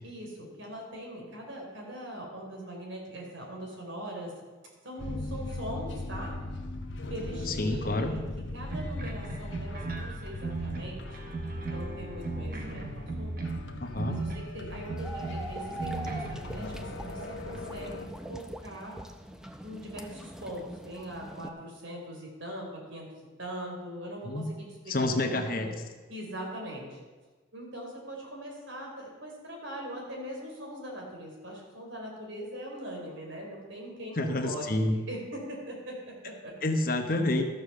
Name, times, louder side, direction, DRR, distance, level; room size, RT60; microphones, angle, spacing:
voice 1, 0.0-4.3 4.8-6.3 7.1-8.2 8.5-11.3 11.7-13.4 14.1-19.0 19.6-23.1 23.4-25.8 26.1-27.0 27.5-36.5, equal, 75° right, -1 dB, 3.6 m, -41 dB
sound 1, 5.0-18.1, left 2 dB, 70° left, 1.0 m, -39 dB
voice 2, 7.5-8.2 13.8-14.3 24.2-24.5 24.9-25.7 34.2-35.0 36.6-37.4, left 2 dB, 45° left, 5 dB, 1.0 m, -28 dB
sound 2, 8.7-14.6 14.8-16.4, right 3 dB, 45° right, 1.1 m, -37 dB
sound 3, 15.0-21.5, right 1 dB, 5° right, 0.5 m, -42 dB
13.0 x 6.8 x 6.6 m, 1.3 s
head